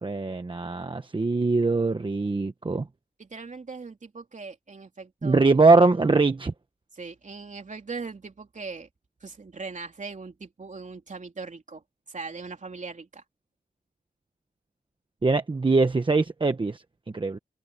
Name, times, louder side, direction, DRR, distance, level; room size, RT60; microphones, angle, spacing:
voice 1, 0.0-2.9 5.2-6.5 15.2-16.8 17.1-17.4, right 3 dB, 30° right, 1.0 m, -22 dB
voice 2, 3.2-5.5 6.9-8.9 9.2-11.8 12.1-13.2, right 4 dB, 50° right, 3.4 m, -39 dB
wide cardioid pair, 125°, 17 cm